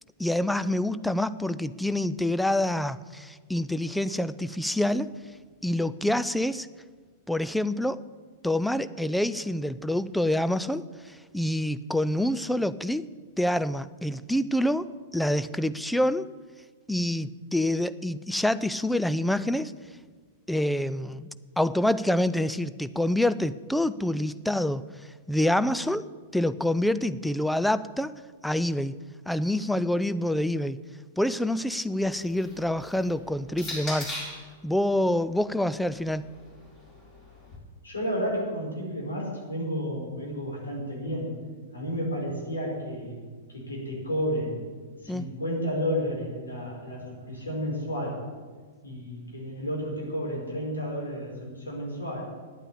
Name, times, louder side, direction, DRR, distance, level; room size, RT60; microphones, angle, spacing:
voice 1, 0.2-5.1 5.6-6.7 7.3-8.0 8.4-13.1 13.4-16.3 16.9-19.7 20.5-21.3 21.6-24.8 25.3-26.1 26.3-28.1 28.4-29.0 29.3-30.8 31.2-34.1 34.6-36.2 45.1-45.3, left 1 dB, ahead, 14 dB, 0.4 m, -26 dB
sound 1, 32.0-34.5 35.4-37.6, left 1 dB, 25° left, 4.5 m, -41 dB
voice 2, 37.8-41.3 41.7-43.2 43.5-44.7 45.0-48.2 48.8-52.3, equal, 70° left, -2 dB, 4.8 m, -32 dB
10.0 x 9.0 x 8.4 m, 1.5 s
figure-of-eight pair, 100°, 0 cm